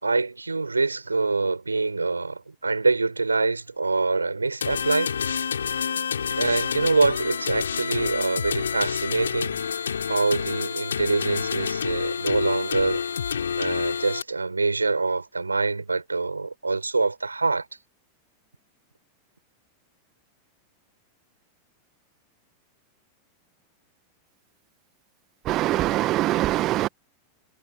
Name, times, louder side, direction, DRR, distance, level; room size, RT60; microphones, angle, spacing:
voice 1, 0.0-5.1 5.9-6.0 6.3-13.0 13.6-17.7, right 3 dB, 80° right, 5.4 m, -25 dB
sound 1, 4.6-14.2, left 7 dB, 70° left, 3.9 m, -28 dB
voice 2, 25.5-26.9, right 16 dB, 35° right, 1.6 m, -23 dB
figure-of-eight pair, 90°, 0 cm